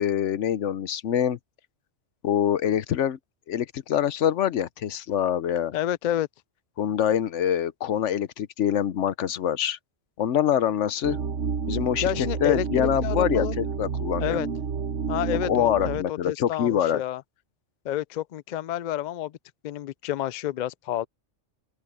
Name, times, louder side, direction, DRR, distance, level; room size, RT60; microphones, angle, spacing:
voice 1, 0.0-1.4 2.2-3.2 3.5-5.7 6.8-9.8 10.2-11.2 11.7-14.4 15.4-17.0, left 9 dB, 85° left, 1.1 m, -25 dB
voice 2, 5.7-6.3 12.0-13.5 14.2-14.5 15.1-17.2 17.8-19.3 19.6-21.1, left 12 dB, 60° left, 0.5 m, -29 dB
sound 1, 11.0-16.0, right 6 dB, 85° right, 1.4 m, -30 dB
open air
omnidirectional pair, 1.2 m